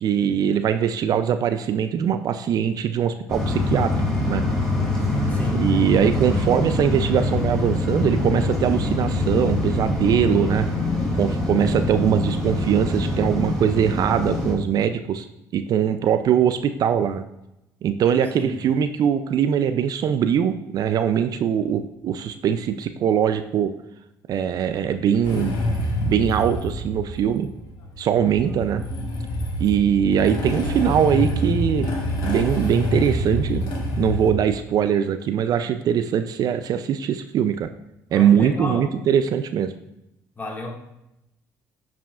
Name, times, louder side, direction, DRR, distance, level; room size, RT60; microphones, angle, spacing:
voice 1, 0.0-3.9 4.3-4.4 5.6-10.7 11.1-15.3 15.5-17.2 17.8-23.7 24.3-27.5 28.0-28.8 29.6-31.9 32.2-33.6 34.0-37.7 38.1-39.7, right 8 dB, 55° right, 10 dB, 0.4 m, -22 dB
sound 1, 3.3-14.5, left 2 dB, 5° left, 2.4 m, -24 dB
voice 2, 5.3-5.6 18.4-18.6 38.1-38.9 40.4-40.7, left 1 dB, 25° left, -1 dB, 1.8 m, -31 dB
Motorcycle / Engine starting, 25.2-34.3, equal, 65° left, 1.5 m, -26 dB
9.0 x 4.9 x 2.4 m, 0.87 s
supercardioid pair, 80°, 8 cm